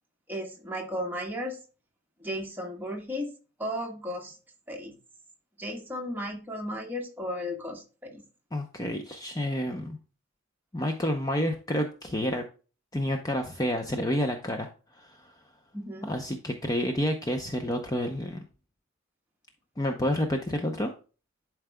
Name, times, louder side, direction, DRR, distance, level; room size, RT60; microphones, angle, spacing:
voice 1, 0.3-1.6 2.2-3.3 3.6-4.4 4.7-4.9 5.6-8.2 15.7-16.1, equal, 10° right, 1 dB, 1.3 m, -35 dB
voice 2, 8.5-10.0 10.7-12.5 12.9-15.3 16.1-18.4 19.8-20.9, left 1 dB, 20° left, 5 dB, 0.6 m, -29 dB
11.0 x 4.6 x 2.2 m, 0.35 s
head